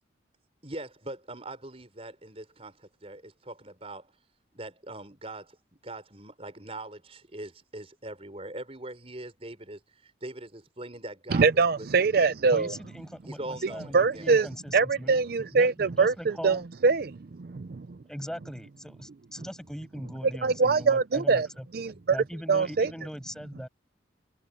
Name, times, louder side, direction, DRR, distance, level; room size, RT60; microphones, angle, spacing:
voice 1, 0.6-4.1 4.5-5.6 5.8-12.1 13.3-14.3 21.9-22.0, right 2 dB, 30° right, 4.9 m, -42 dB
voice 2, 11.3-12.7 13.9-14.5 14.7-17.9 20.4-21.5 21.7-22.2 22.5-22.9, right 4 dB, 50° right, 0.5 m, -23 dB
voice 3, 12.5-15.2 15.6-16.6 18.1-21.7 22.1-23.7, equal, 5° left, 7.9 m, -40 dB
head